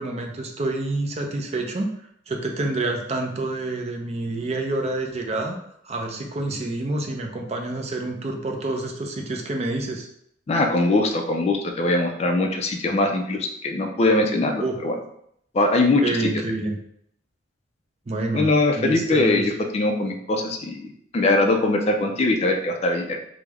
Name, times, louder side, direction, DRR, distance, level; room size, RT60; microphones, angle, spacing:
voice 1, 0.0-1.9 2.3-5.6 5.8-10.1 14.6-14.8 16.0-16.8 18.1-18.5 18.8-19.4, right 2 dB, 35° right, 2 dB, 0.5 m, -27 dB
voice 2, 10.5-15.0 15.5-16.2 18.3-20.8 21.1-23.2, left 2 dB, 35° left, 3 dB, 0.3 m, -21 dB
3.3 x 2.0 x 3.4 m, 0.71 s
head